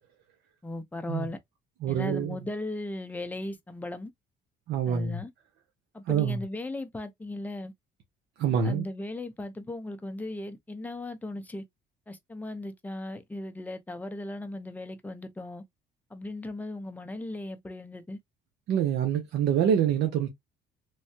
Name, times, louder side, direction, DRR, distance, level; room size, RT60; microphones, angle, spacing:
voice 1, 0.6-1.4 1.9-4.1 4.9-5.3 5.9-7.7 8.5-11.6 12.1-15.6 16.1-18.2, left 2 dB, 10° left, 0.5 m, -37 dB
voice 2, 1.8-2.4 4.7-5.2 6.1-6.4 8.4-8.8 18.7-20.3, right 8 dB, 80° right, 0.7 m, -26 dB
3.2 x 2.2 x 2.6 m
cardioid pair, 110°, 17 cm